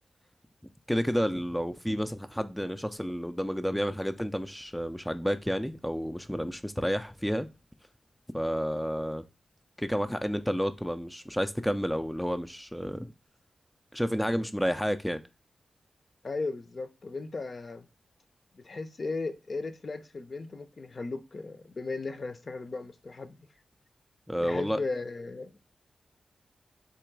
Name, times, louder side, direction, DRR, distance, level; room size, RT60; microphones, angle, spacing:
voice 1, 0.9-7.5 8.3-9.2 9.8-13.1 13.9-15.2 24.3-24.8, equal, 5° left, 0.3 m, -30 dB
voice 2, 16.2-17.9 18.5-23.4 24.4-25.5, left 3 dB, 50° left, 0.5 m, -36 dB
3.8 x 3.0 x 4.5 m
cardioid pair, 75°, 0 cm